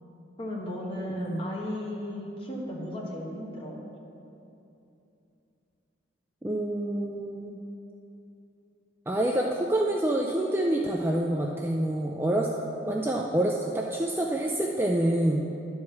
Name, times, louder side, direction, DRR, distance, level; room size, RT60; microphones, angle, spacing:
voice 1, 0.4-3.8 12.8-12.9, left 1 dB, 25° left, -3 dB, 1.4 m, -35 dB
voice 2, 6.4-7.6 9.1-12.5 12.8-15.5, right 1 dB, 10° right, -1 dB, 0.4 m, -27 dB
11.0 x 4.8 x 7.0 m, 2.8 s
head